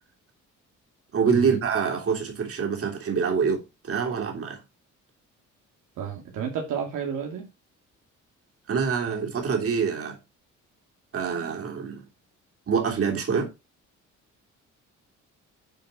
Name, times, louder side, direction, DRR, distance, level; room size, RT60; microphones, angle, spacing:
voice 1, 1.1-4.6 8.7-10.2 11.1-12.1 12.7-13.5, right 6 dB, 50° right, 3.3 m, -26 dB
voice 2, 6.0-7.5, right 7 dB, 85° right, 2.3 m, -31 dB
9.5 x 4.7 x 4.1 m
cardioid pair, 90°, 30 cm